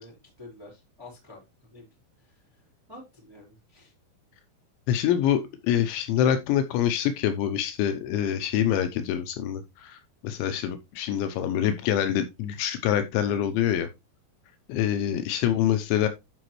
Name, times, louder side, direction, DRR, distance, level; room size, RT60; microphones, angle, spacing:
voice 1, 0.0-1.4 1.7-1.9 2.2-2.6 2.9-3.9 14.9-15.1, left 2 dB, 5° right, -3 dB, 3.8 m, -49 dB
voice 2, 4.9-10.0 10.2-13.9 14.7-16.1, left 10 dB, 80° left, 8 dB, 3.0 m, -25 dB
12.0 x 5.2 x 3.1 m, 0.23 s
omnidirectional pair, 5.4 m